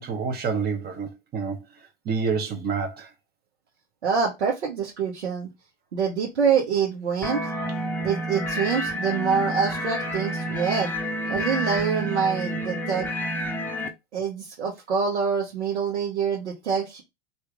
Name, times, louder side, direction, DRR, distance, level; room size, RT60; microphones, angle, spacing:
voice 1, 0.0-1.6 2.0-3.1, right 5 dB, 30° right, 0.9 m, -28 dB
voice 2, 4.0-5.5 5.9-7.4 8.0-10.9 11.3-13.1 14.1-17.0, right 6 dB, 80° right, 1.2 m, -25 dB
sound 1, 7.2-13.9, equal, 5° left, 0.6 m, -29 dB
2.9 x 2.7 x 3.6 m
hypercardioid pair, 95°, 33 cm